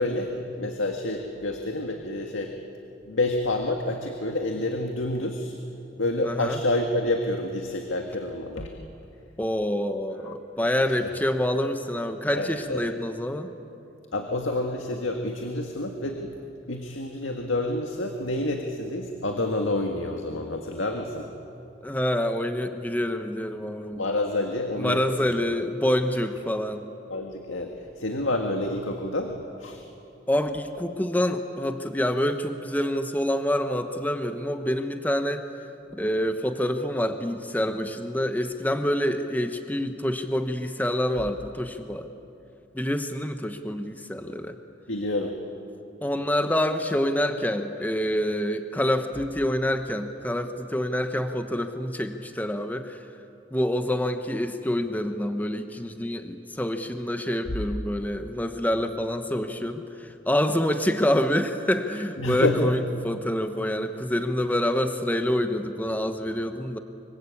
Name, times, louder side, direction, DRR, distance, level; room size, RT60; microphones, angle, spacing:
voice 1, 0.0-2.5 3.1-5.6 6.0-8.7 10.2-10.3 10.9-11.1 12.3-12.8 14.1-16.4 16.7-21.3 24.0-25.0 27.1-29.3 29.6-29.8 44.9-45.3 62.2-62.8, left 2 dB, 85° left, 3 dB, 1.9 m, -28 dB
voice 2, 6.2-6.6 9.4-13.5 18.2-18.3 21.8-24.0 24.8-26.9 30.3-35.4 35.9-42.1 42.7-44.6 46.0-53.1 53.5-66.8, left 1 dB, 10° left, 7 dB, 1.0 m, -27 dB
25.0 x 24.0 x 8.5 m, 2.8 s
head